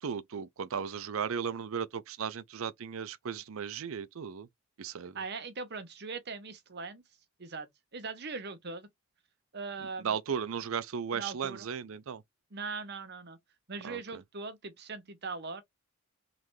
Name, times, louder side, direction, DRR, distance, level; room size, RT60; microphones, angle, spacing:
voice 1, 0.0-4.5 4.8-5.2 10.0-12.2 13.8-14.2, right 7 dB, 70° right, 0.5 m, -36 dB
voice 2, 5.1-7.0 7.4-8.9 9.5-10.2 11.1-11.7 12.5-13.4 13.7-15.6, right 4 dB, 50° right, 0.9 m, -40 dB
3.8 x 3.2 x 3.2 m
head